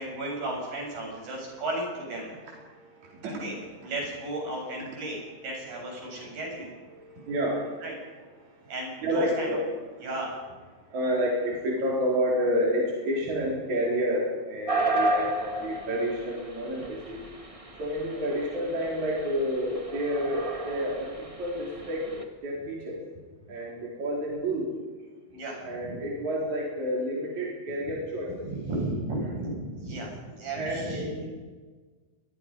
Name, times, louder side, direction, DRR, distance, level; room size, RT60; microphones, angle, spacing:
voice 1, 0.0-2.3 3.2-3.6 3.8-6.7 7.8-7.9 8.7-9.6 10.0-10.4 25.3-26.0 28.5-31.1, right 1 dB, 85° right, -1 dB, 9.6 m, -34 dB
voice 2, 1.0-1.3 2.2-3.9 6.0-6.4 6.9-7.9 8.4-8.7 9.0-9.6 9.9-10.1 10.9-17.2 17.8-22.1 22.4-23.0 23.5-24.7 25.6-28.5 29.2-29.4 30.5-31.3, equal, 55° right, -3 dB, 5.5 m, -30 dB
sound 1, 14.7-22.2, right 2 dB, 15° right, 1.5 m, -33 dB
28.5 x 21.5 x 5.4 m, 1.4 s
omnidirectional pair, 3.9 m